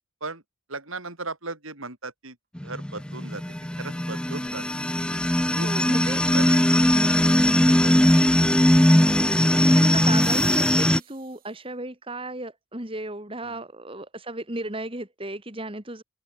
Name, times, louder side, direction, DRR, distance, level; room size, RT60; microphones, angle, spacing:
voice 1, 0.7-2.4 2.6-3.4 3.8-4.7 5.3-8.2 9.4-9.7 13.4-13.6, right 3 dB, 70° right, 5.4 m, -38 dB
sound 1, 2.6-11.0, left 1 dB, 5° left, 0.5 m, -20 dB
sound 2, 4.3-4.4 9.9-11.7 13.9-14.0, right 13 dB, 40° right, 2.4 m, -44 dB
voice 2, 5.6-6.2 9.1-16.0, right 2 dB, 25° right, 2.2 m, -35 dB
open air
head